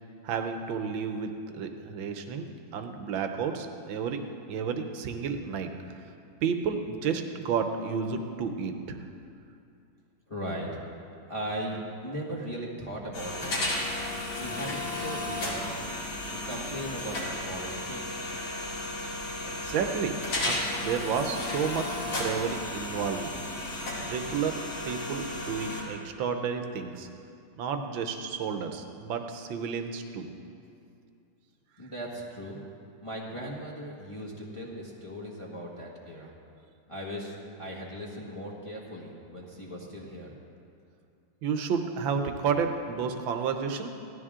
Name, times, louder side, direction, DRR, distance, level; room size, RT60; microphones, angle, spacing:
voice 1, 0.2-2.5 2.7-5.7 6.4-9.0 19.5-23.3 24.0-27.1 27.6-30.3 41.4-43.9, right 6 dB, 80° right, 6 dB, 1.6 m, -31 dB
voice 2, 10.3-10.7 11.2-11.8 12.0-13.6 14.4-15.8 16.3-18.2 31.8-32.6 33.0-36.3 36.9-40.3, equal, 15° left, -6 dB, 1.6 m, -38 dB
sound 1, 13.1-25.8, left 1 dB, 85° left, 3.1 m, -34 dB
17.0 x 12.5 x 3.7 m, 2.5 s
omnidirectional pair, 2.1 m